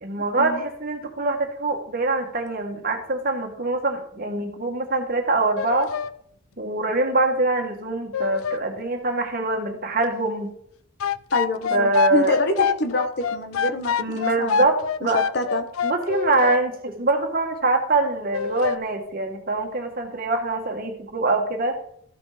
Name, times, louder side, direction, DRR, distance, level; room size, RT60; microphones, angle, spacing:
voice 1, 0.0-5.9 6.6-10.5 11.7-12.4 14.0-15.2 15.8-21.8, right 2 dB, 45° right, 4 dB, 1.6 m, -24 dB
sound 1, 5.6-6.1 8.1-8.6 11.0-16.6 18.3-18.8, left 6 dB, 90° left, 0.5 m, -25 dB
voice 2, 11.3-14.7 15.0-15.6, left 2 dB, 50° left, 7 dB, 1.3 m, -26 dB
13.5 x 5.3 x 5.0 m, 0.66 s
head